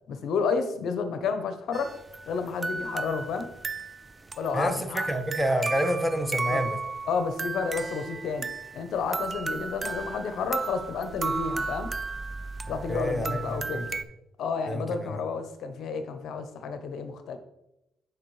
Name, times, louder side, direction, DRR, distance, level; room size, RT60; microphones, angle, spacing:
voice 1, 0.1-1.9 2.3-3.5 4.4-5.2 6.5-6.6 7.1-8.5 8.7-11.9 12.7-13.8 14.4-17.4, left 5 dB, 70° left, 8 dB, 0.7 m, -31 dB
sound 1, 1.7-14.0, right 3 dB, 25° right, 0.3 m, -34 dB
voice 2, 4.5-6.8 12.9-13.9 14.7-15.2, equal, 5° right, 6 dB, 0.9 m, -28 dB
8.8 x 5.0 x 3.1 m, 0.87 s
cardioid pair, 90°, 0 cm